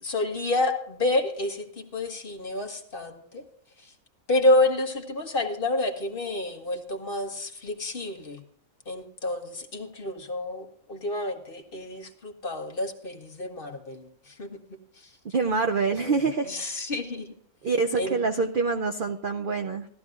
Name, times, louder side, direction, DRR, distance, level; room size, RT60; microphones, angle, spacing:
voice 1, 0.0-3.4 3.8-3.9 4.3-8.4 8.9-14.6 15.0-15.1 16.0-16.1 16.5-17.3 18.0-18.2, left 2 dB, 40° left, 4 dB, 1.1 m, -29 dB
voice 2, 15.3-16.8 17.6-19.9, right 4 dB, 65° right, 5 dB, 0.5 m, -26 dB
16.5 x 13.0 x 2.4 m, 0.67 s
omnidirectional pair, 1.6 m